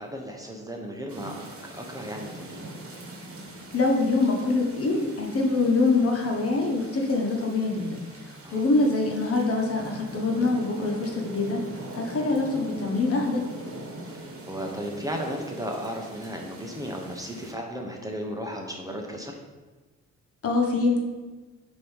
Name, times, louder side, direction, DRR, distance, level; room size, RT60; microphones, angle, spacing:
voice 1, 0.0-1.4 1.7-2.6 8.4-8.6 14.1-19.3, equal, 10° right, 1 dB, 0.9 m, -35 dB
sound 1, 1.1-17.5, right 2 dB, 45° right, 1.4 m, -42 dB
voice 2, 3.7-8.0 8.5-11.6 11.9-13.5 20.4-21.0, left 3 dB, 50° left, 1 dB, 1.3 m, -24 dB
6.8 x 3.1 x 5.5 m, 1.3 s
cardioid pair, 90°, 30 cm